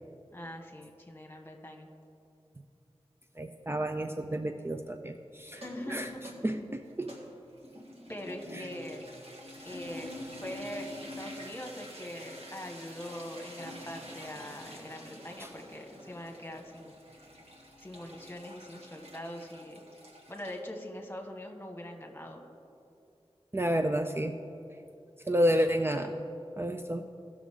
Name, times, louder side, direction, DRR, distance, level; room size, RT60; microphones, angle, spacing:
voice 1, 0.3-1.9 5.5-6.2 8.1-9.0 9.6-10.1 10.4-16.9 17.8-19.8 20.3-22.4, left 1 dB, 20° left, 2 dB, 1.4 m, -42 dB
voice 2, 3.4-5.6 5.9-6.1 6.4-7.1 8.5-8.6 15.4-15.5 23.5-24.3 25.3-26.1 26.6-27.0, equal, 20° right, 6 dB, 0.4 m, -30 dB
sound 1, 5.5-20.6, equal, 70° right, 1.6 m, -47 dB
17.0 x 6.2 x 3.6 m, 2.6 s
wide cardioid pair, 45°, 11 cm